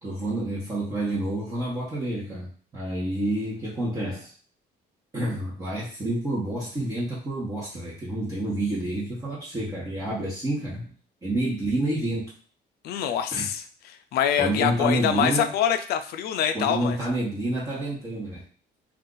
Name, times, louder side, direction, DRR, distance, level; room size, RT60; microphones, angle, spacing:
voice 1, 0.0-4.3 5.1-10.9 11.2-12.2 12.9-13.5 14.4-15.5 16.5-18.4, right 1 dB, 20° right, -7 dB, 1.0 m, -29 dB
voice 2, 12.8-13.6 14.1-17.0, left 9 dB, 70° left, 9 dB, 0.4 m, -25 dB
2.5 x 2.4 x 3.8 m, 0.43 s
cardioid pair, 110°, 17 cm